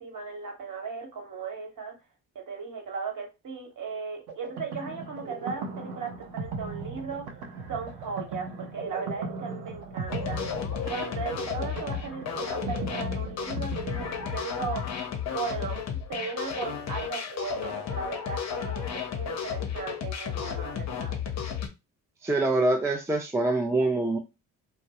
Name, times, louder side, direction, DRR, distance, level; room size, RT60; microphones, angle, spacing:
voice 1, 0.0-1.9 2.3-10.5 10.8-14.8 15.3-21.1, right 5 dB, 45° right, 1 dB, 1.2 m, -37 dB
sound 1, 4.3-14.8, right 4 dB, 80° right, 0.6 m, -38 dB
sound 2, 10.1-21.7, left 8 dB, 40° left, 0.6 m, -33 dB
voice 2, 22.2-24.2, right 2 dB, 5° right, 2 dB, 0.4 m, -25 dB
2.2 x 2.0 x 2.8 m, 0.25 s
hypercardioid pair, 55°, 42 cm